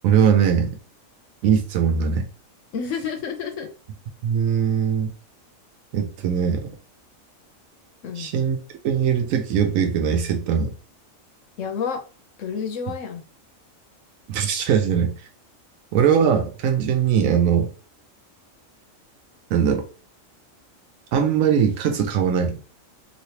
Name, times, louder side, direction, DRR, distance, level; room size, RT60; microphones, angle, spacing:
voice 1, 0.0-0.8 1.4-2.3 4.2-5.1 5.9-6.8 8.2-8.6 8.8-10.7 14.3-15.1 15.9-17.7 19.5-19.8 21.1-22.8, right 7 dB, 90° right, 1.0 m, -20 dB
voice 2, 2.7-3.7 8.0-8.3 11.6-12.0 12.4-13.2, left 6 dB, 75° left, 1.0 m, -29 dB
3.2 x 2.7 x 2.8 m
omnidirectional pair, 1.4 m